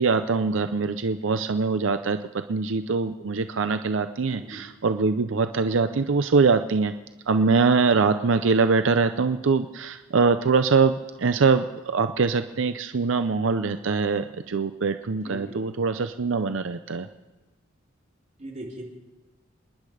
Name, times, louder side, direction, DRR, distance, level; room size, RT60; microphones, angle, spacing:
voice 1, 0.0-2.2 2.5-6.9 7.3-17.1, right 4 dB, 75° right, 9 dB, 0.6 m, -23 dB
voice 2, 4.3-4.6 15.2-15.6 18.4-18.8, right 1 dB, 35° right, -2 dB, 3.2 m, -39 dB
27.5 x 10.5 x 5.0 m, 1.1 s
head